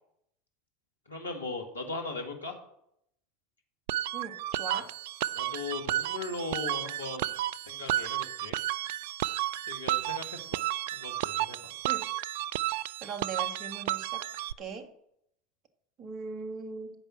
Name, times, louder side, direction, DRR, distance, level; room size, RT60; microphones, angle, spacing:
voice 1, 1.1-2.6 5.3-7.4 7.6-8.6 9.7-10.6 10.9-11.7, left 3 dB, 85° left, 2 dB, 2.0 m, -38 dB
sound 1, 3.9-14.5, right 14 dB, 60° right, 0.3 m, -32 dB
voice 2, 4.1-4.9 11.9-12.1 13.0-14.3 14.6-14.9 16.0-16.9, right 4 dB, 35° right, 8 dB, 1.8 m, -40 dB
14.0 x 5.4 x 7.7 m, 0.77 s
figure-of-eight pair, 80°, 0 cm